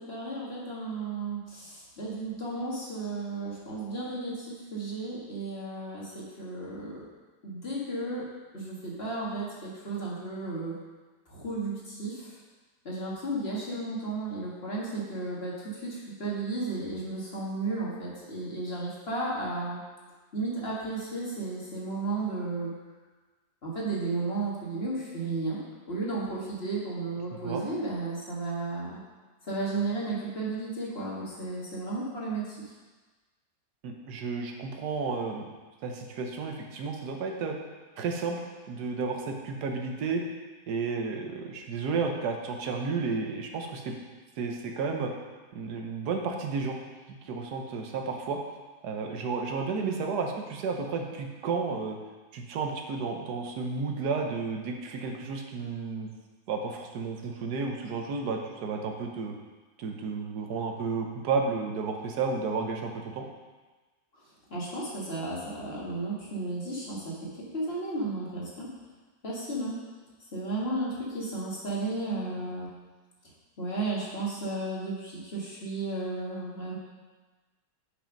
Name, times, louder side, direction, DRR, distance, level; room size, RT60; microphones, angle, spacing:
voice 1, 0.0-7.0 7.4-8.2 8.5-10.8 11.3-12.4 12.8-19.8 20.3-22.7 23.6-25.6 25.9-29.0 29.5-32.6 49.7-49.9 64.5-68.7 69.2-69.8 70.3-72.7 73.6-76.8, right 2 dB, 35° left, -6 dB, 1.9 m, -33 dB
voice 2, 33.8-35.5 35.8-37.5 38.0-38.4 38.7-40.2 40.7-43.9 44.4-45.1 45.5-46.8 47.3-48.4 48.8-52.0 52.3-56.1 56.5-59.3 59.8-63.2, right 4 dB, 70° right, 2 dB, 1.4 m, -32 dB
7.6 x 5.4 x 5.2 m, 1.3 s
omnidirectional pair, 1.9 m